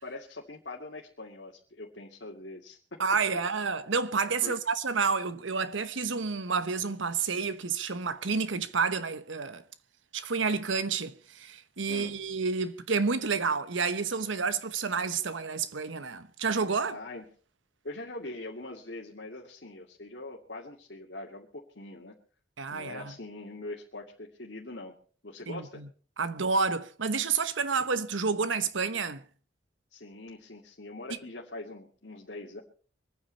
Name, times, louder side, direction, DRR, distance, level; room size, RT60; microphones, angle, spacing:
voice 1, 0.0-3.0 4.4-4.6 11.9-12.2 16.9-17.2 17.8-22.1 22.7-24.9 25.2-25.8 29.9-32.6, left 2 dB, 65° left, 2.4 m, -42 dB
voice 2, 3.0-9.6 10.1-17.0 22.6-23.1 25.5-25.9 26.2-29.2, right 5 dB, 90° right, 1.0 m, -29 dB
25.0 x 9.8 x 4.1 m
head